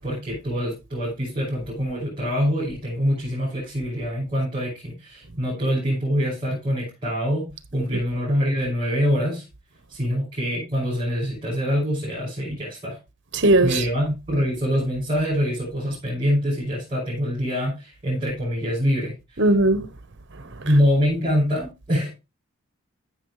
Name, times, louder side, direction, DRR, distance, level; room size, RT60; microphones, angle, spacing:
voice 1, 0.0-9.4 9.9-13.0 13.6-19.5 20.6-22.1, equal, 25° right, 5.9 m, -25 dB
voice 2, 13.3-13.8 19.4-19.9, right 2 dB, 55° right, 1.0 m, -17 dB
14.5 x 6.4 x 3.1 m
head